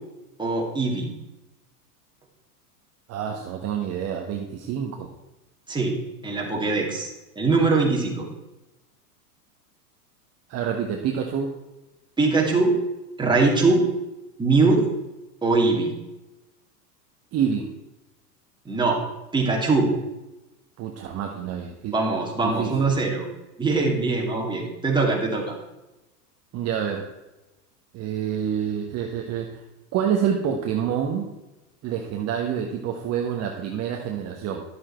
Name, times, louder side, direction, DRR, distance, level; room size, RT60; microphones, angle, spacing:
voice 1, 0.4-1.1 5.7-6.0 6.2-7.1 7.4-8.3 12.2-12.8 13.2-13.8 14.4-14.8 15.4-16.0 18.7-19.0 19.3-19.9 21.9-23.3 23.6-25.5, right 3 dB, 10° right, -1 dB, 2.4 m, -22 dB
voice 2, 3.1-5.1 10.5-11.5 17.3-17.7 20.8-21.9 22.4-22.9 26.5-27.1 27.9-29.6 29.9-31.3 31.8-34.6, right 8 dB, 35° right, 2 dB, 1.2 m, -27 dB
11.5 x 7.6 x 4.4 m, 1.0 s
hypercardioid pair, 115°, 47 cm